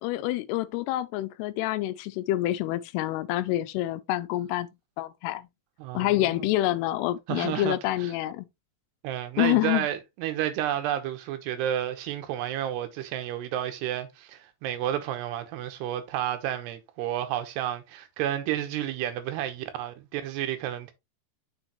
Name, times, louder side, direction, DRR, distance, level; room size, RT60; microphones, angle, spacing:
voice 1, 0.0-4.7 5.0-5.5 5.9-8.5 9.4-9.9, left 15 dB, 85° left, 2.5 m, -27 dB
voice 2, 5.8-6.5 7.3-8.1 9.0-20.9, right 11 dB, 80° right, 3.1 m, -31 dB
6.4 x 6.3 x 3.0 m
omnidirectional pair, 4.8 m